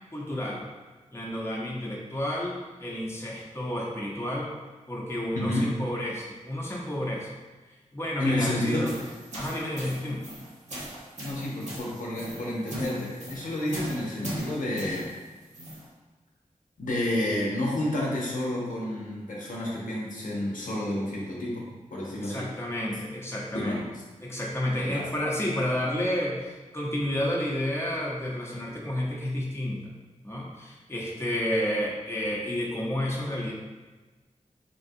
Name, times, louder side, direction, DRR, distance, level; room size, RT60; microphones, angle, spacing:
voice 1, 0.1-0.6 1.1-4.5 4.9-7.4 7.9-8.9 9.3-10.2 22.1-23.8 24.2-29.9 30.2-33.5, left 1 dB, 20° left, -3 dB, 0.7 m, -31 dB
voice 2, 5.3-5.7 8.2-9.1 11.2-15.1 16.8-22.5 23.5-23.8 24.8-25.1, left 1 dB, 80° left, -4 dB, 0.7 m, -30 dB
sound 1, 8.6-15.9, right 1 dB, 65° right, 1.0 m, -39 dB
3.7 x 2.3 x 2.6 m, 1.3 s
cardioid pair, 45°, 13 cm